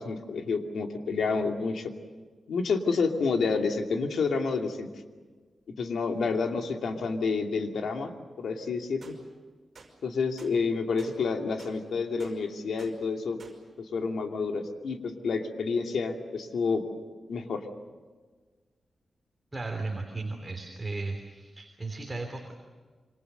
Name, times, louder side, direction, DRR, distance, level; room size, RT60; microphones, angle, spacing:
voice 1, 0.0-1.9 2.5-4.9 5.8-9.1 10.0-13.4 13.8-16.8 17.3-17.6, left 4 dB, 85° left, 3 dB, 2.6 m, -29 dB
sound 1, 9.0-9.2 9.7-9.9 10.4-10.5 11.0-11.1 11.6-11.7 12.2-12.3 12.8-12.9 13.4-13.5, right 4 dB, 45° right, 5.6 m, -50 dB
voice 2, 19.5-22.5, right 3 dB, 20° right, 3 dB, 3.1 m, -35 dB
27.5 x 25.5 x 6.8 m, 1.4 s
wide cardioid pair, 130°, 0 cm